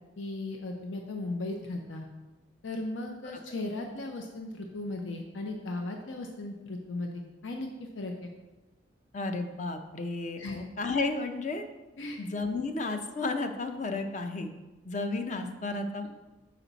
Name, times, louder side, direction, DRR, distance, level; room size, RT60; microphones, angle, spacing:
voice 1, 0.2-2.1 2.6-8.3 10.4-10.6 12.0-12.2, left 2 dB, 85° left, 2 dB, 0.6 m, -37 dB
voice 2, 9.1-11.6 12.2-14.5 14.8-16.1, left 3 dB, 40° left, 7 dB, 0.5 m, -32 dB
5.9 x 5.0 x 3.9 m, 1.1 s
head